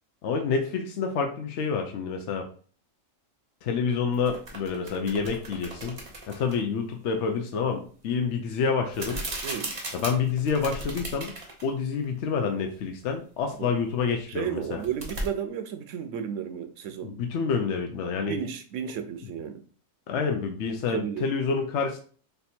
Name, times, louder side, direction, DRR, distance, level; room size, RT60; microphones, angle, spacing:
voice 1, 0.2-2.4 3.6-6.0 6.3-9.2 9.9-11.3 11.6-14.8 17.0-18.4 20.1-22.0, left 5 dB, 65° left, 0.8 m, -28 dB
sound 1, 4.1-6.6 8.9-11.7 12.0-12.1 14.6-15.3, right 2 dB, 30° right, 0.7 m, -37 dB
voice 2, 14.3-17.2 18.3-19.6 20.9-21.3, right 9 dB, 70° right, 0.9 m, -33 dB
3.4 x 2.6 x 4.2 m
omnidirectional pair, 1.4 m